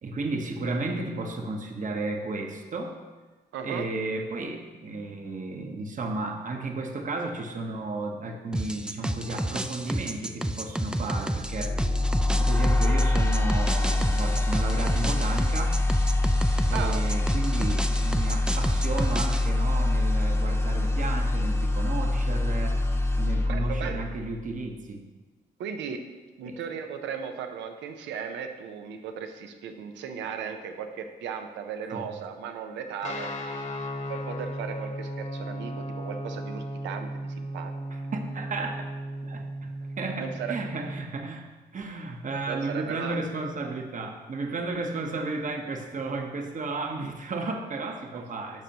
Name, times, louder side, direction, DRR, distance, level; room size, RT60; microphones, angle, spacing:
voice 1, 0.0-3.0 3.6-11.8 12.4-15.8 16.7-22.8 23.2-25.0 26.4-26.7 31.9-32.1 37.9-38.8 39.2-48.6, right 3 dB, 45° right, 4 dB, 1.0 m, -33 dB
voice 2, 3.5-3.9 16.7-17.0 23.4-24.0 25.6-26.0 26.4-33.3 34.1-37.7 40.2-40.6 42.5-43.2 48.1-48.3, right 7 dB, 85° right, 6 dB, 0.7 m, -36 dB
sound 1, 8.5-19.5, right 1 dB, 5° right, 0.4 m, -31 dB
sound 2, 11.4-24.5, left 2 dB, 15° left, 0.9 m, -25 dB
Guitar, 33.0-41.1, equal, 40° left, 1.2 m, -35 dB
10.5 x 6.1 x 2.9 m, 1.3 s
cardioid pair, 70°, 18 cm